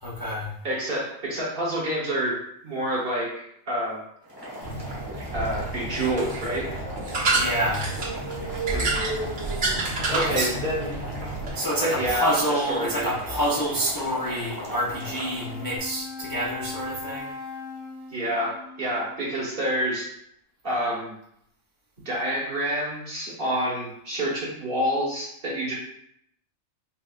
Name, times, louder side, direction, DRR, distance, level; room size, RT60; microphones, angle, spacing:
voice 1, 0.0-0.5 7.3-7.9 10.1-10.5 11.5-17.3, equal, 30° left, -6 dB, 0.4 m, -27 dB
voice 2, 0.6-4.0 5.3-6.7 8.7-9.0 10.1-10.9 11.8-13.1 18.1-20.1 20.6-21.1 22.0-25.7, right 1 dB, 45° right, -4 dB, 1.2 m, -28 dB
Boiling, 4.2-15.8, equal, 20° right, 0.9 m, -38 dB
sound 1, 4.6-11.5, right 2 dB, 60° right, 1.4 m, -29 dB
Wind instrument woodwind instrument, 14.8-19.7, left 4 dB, 80° right, 1.2 m, -40 dB
5.6 x 2.2 x 2.4 m, 0.73 s
omnidirectional pair, 1.4 m